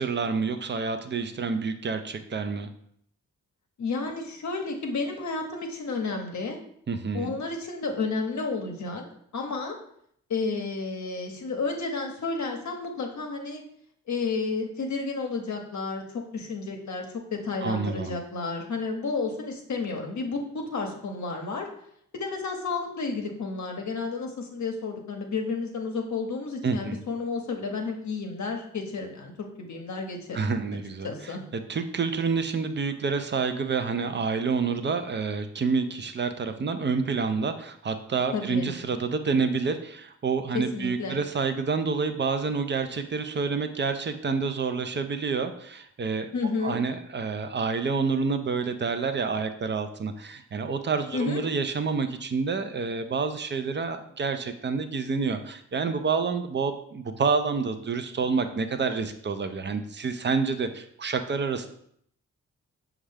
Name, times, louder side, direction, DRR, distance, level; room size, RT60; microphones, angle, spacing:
voice 1, 0.0-2.7 6.9-7.4 17.6-18.2 26.6-27.0 30.3-31.1 31.7-46.3 46.6-61.7, right 5 dB, 30° right, 9 dB, 0.5 m, -28 dB
voice 2, 3.8-6.6 7.1-9.0 9.3-9.8 10.3-13.6 14.1-17.1 17.3-21.7 22.1-30.4 31.0-31.4 38.3-38.7 40.5-41.2 46.3-46.8 51.1-51.4, left 4 dB, 55° left, 2 dB, 0.8 m, -31 dB
5.2 x 2.4 x 3.3 m, 0.68 s
supercardioid pair, 40°, 35 cm